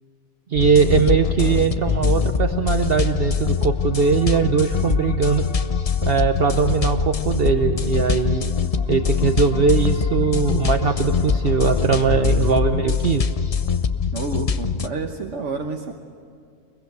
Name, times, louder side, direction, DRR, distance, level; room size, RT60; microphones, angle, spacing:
sound 1, 0.5-14.9, left 6 dB, 35° left, 0.7 m, -23 dB
voice 1, 0.5-5.5 6.0-8.4 8.9-13.3, right 6 dB, 50° right, 7 dB, 1.1 m, -20 dB
voice 2, 14.1-15.9, right 3 dB, 70° right, 2 dB, 1.6 m, -29 dB
24.0 x 22.5 x 8.1 m, 2.4 s
omnidirectional pair, 1.3 m